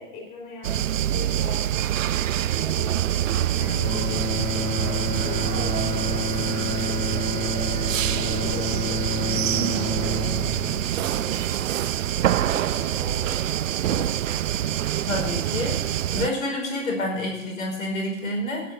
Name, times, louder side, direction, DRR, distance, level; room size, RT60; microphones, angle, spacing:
voice 1, 0.0-1.6 2.1-5.8 6.1-7.5 8.1-11.5 12.2-14.4, left 3 dB, 20° left, -2 dB, 4.4 m, -41 dB
sound 1, 0.6-16.3, right 12 dB, 70° right, 0.6 m, -25 dB
Bowed string instrument, 3.6-11.8, left 4 dB, 40° left, 4.2 m, -31 dB
voice 2, 15.1-18.6, left 1 dB, 80° left, 0 dB, 5.2 m, -28 dB
10.5 x 7.9 x 8.8 m, 0.86 s
hypercardioid pair, 175°, 40 cm